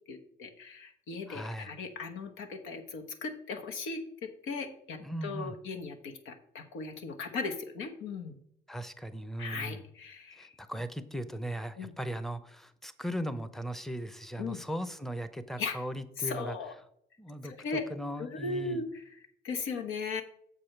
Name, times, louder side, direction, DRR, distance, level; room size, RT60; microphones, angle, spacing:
voice 1, 0.1-8.4 9.4-10.5 11.8-11.9 14.4-14.6 15.6-15.8 16.2-16.7 17.4-17.8 18.2-19.0 19.4-20.2, left 4 dB, 90° left, 5 dB, 1.1 m, -37 dB
voice 2, 1.3-1.7 5.0-5.6 8.7-9.8 10.4-16.6 17.2-17.5 17.9-18.8, equal, ahead, 12 dB, 0.6 m, -38 dB
7.0 x 4.9 x 5.9 m, 0.69 s
cardioid pair, 90°, 20 cm